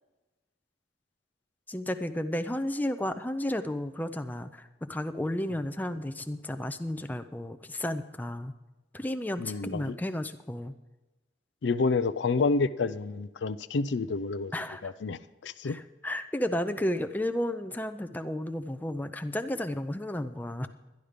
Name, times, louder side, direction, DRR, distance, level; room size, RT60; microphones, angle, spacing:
voice 1, 1.7-8.5 8.9-10.7 14.5-14.9 15.6-20.7, left 1 dB, 10° left, 9 dB, 0.5 m, -33 dB
voice 2, 9.4-10.0 11.6-14.5 14.8-15.8, left 4 dB, 70° left, 14 dB, 0.5 m, -29 dB
12.0 x 11.0 x 5.1 m, 1.1 s
head